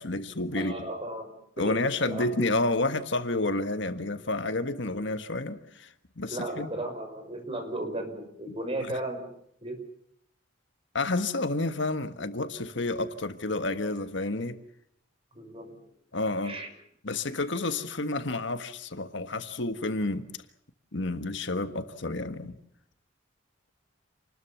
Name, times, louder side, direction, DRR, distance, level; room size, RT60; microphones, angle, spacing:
voice 1, 0.0-0.7 1.6-5.9 6.2-6.7 8.9-9.0 10.9-14.6 16.1-16.6 17.0-20.2 20.9-22.5, left 2 dB, 65° left, 9 dB, 1.6 m, -30 dB
voice 2, 0.5-2.2 6.3-9.3 9.6-9.8 15.3-15.8 16.4-16.7, right 1 dB, 30° right, 6 dB, 5.8 m, -35 dB
28.5 x 20.5 x 7.2 m, 0.70 s
head